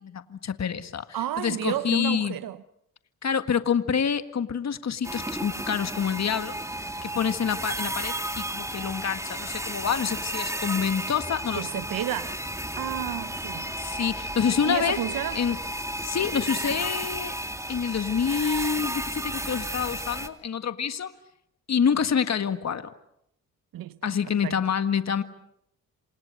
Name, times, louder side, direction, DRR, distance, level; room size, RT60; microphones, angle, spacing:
voice 1, 0.0-2.4 3.2-6.6 7.0-11.7 13.8-15.0 15.3-15.6 16.0-17.3 17.7-21.1 21.7-22.9 24.0-25.2, left 7 dB, 50° left, 1.7 m, -27 dB
voice 2, 1.1-2.6 11.6-12.4 12.8-13.7 14.6-15.4 19.7-19.8 23.7-24.1 24.4-24.5, right 11 dB, 75° right, 0.9 m, -31 dB
sound 1, 5.0-20.3, right 1 dB, 10° right, 2.4 m, -33 dB
28.0 x 27.0 x 6.6 m
supercardioid pair, 60°, 34 cm